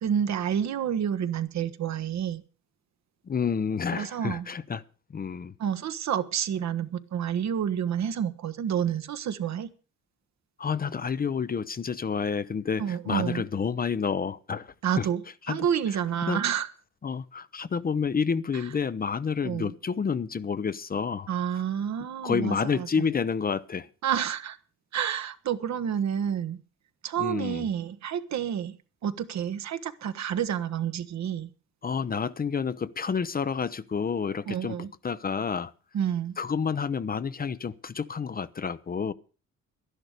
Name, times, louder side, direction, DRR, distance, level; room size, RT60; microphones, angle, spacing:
voice 1, 0.0-2.4 3.9-4.5 5.6-9.7 12.8-13.4 14.8-15.2 15.5-16.7 18.5-18.7 19.4-19.7 21.3-23.0 24.0-24.6 24.9-26.6 27.0-28.8 29.0-31.5 34.5-34.9 35.9-36.4, right 9 dB, 65° right, 1.2 m, -29 dB
voice 2, 3.3-4.8 5.1-5.5 10.6-15.1 15.5-15.7 16.3-16.4 17.0-21.3 22.2-23.9 27.2-27.7 31.8-35.7 36.4-39.1, left 6 dB, 30° left, 0.7 m, -29 dB
11.5 x 11.0 x 6.5 m
cardioid pair, 90°, 30 cm